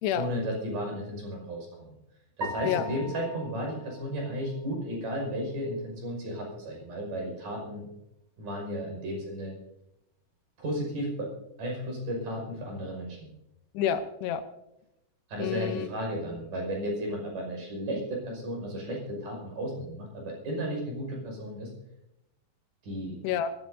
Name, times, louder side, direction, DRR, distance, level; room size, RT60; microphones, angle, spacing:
voice 1, 0.2-1.9 2.4-7.9 8.4-9.5 10.6-11.3 11.6-13.3 15.3-21.7 22.8-23.2, equal, 45° right, 0 dB, 7.3 m, -34 dB
sound 1, 2.4-4.9, left 1 dB, 25° right, 3.0 m, -40 dB
voice 2, 13.7-14.5 15.4-15.9 23.2-23.6, left 9 dB, 75° left, 9 dB, 2.8 m, -29 dB
22.0 x 16.5 x 2.8 m, 0.85 s
omnidirectional pair, 5.2 m